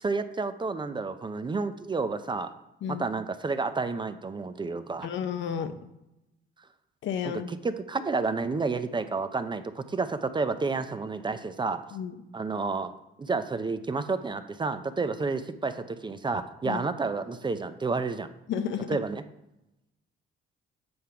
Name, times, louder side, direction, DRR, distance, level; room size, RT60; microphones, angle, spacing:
voice 1, 0.0-2.5 2.9-5.1 7.2-11.8 12.3-12.9 13.2-18.3 18.9-19.2, right 4 dB, 25° right, 10 dB, 0.5 m, -30 dB
voice 2, 5.0-5.8 7.0-7.5 11.9-12.1 16.6-16.8 18.5-19.0, left 8 dB, 70° left, 9 dB, 0.7 m, -32 dB
7.8 x 3.5 x 5.6 m, 0.90 s
cardioid pair, 90°, 20 cm